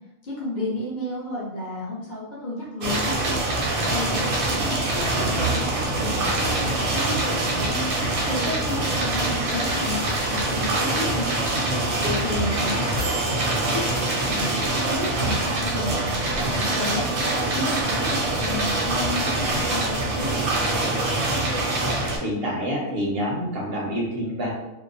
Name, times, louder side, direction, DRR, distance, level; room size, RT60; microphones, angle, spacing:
voice 1, 0.2-3.1 3.8-7.8 8.3-11.3 12.0-12.9 13.3-17.1 17.5-20.4, left 1 dB, 45° left, -6 dB, 0.6 m, -32 dB
sound 1, 2.8-22.2, right 2 dB, 85° right, 1.1 m, -24 dB
voice 2, 22.2-24.5, equal, 55° right, -3 dB, 0.8 m, -27 dB
2.7 x 2.0 x 2.5 m, 0.93 s
omnidirectional pair, 1.5 m